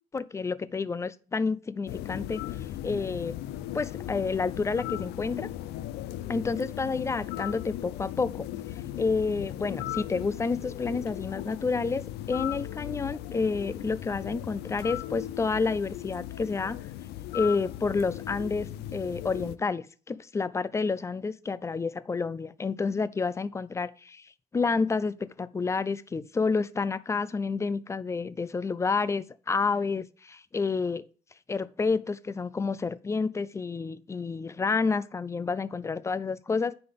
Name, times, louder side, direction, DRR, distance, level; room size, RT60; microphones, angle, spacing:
voice 1, 0.1-2.4 2.8-3.4 3.7-5.5 6.3-8.5 8.9-16.8 17.3-24.3 24.5-31.0 31.5-36.7, left 4 dB, 15° left, 0.3 m, -29 dB
sound 1, 1.9-19.5, left 13 dB, 80° left, 0.4 m, -37 dB
9.6 x 3.9 x 3.4 m
cardioid pair, 110°, 17 cm